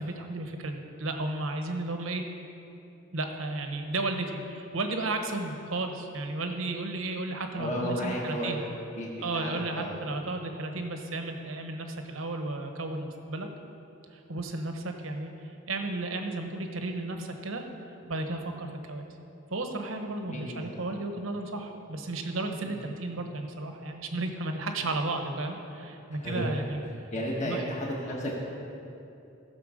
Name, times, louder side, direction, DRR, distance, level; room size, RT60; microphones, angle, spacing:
voice 1, 0.0-2.2 3.1-8.6 9.2-13.5 14.1-17.6 18.1-19.1 19.5-26.8 27.4-27.7, right 2 dB, 85° right, 5 dB, 1.1 m, -33 dB
voice 2, 7.6-8.7 9.0-9.9 20.2-20.8 26.2-26.5 27.1-28.4, equal, 35° left, -4 dB, 1.5 m, -33 dB
15.0 x 6.9 x 5.0 m, 2.8 s
head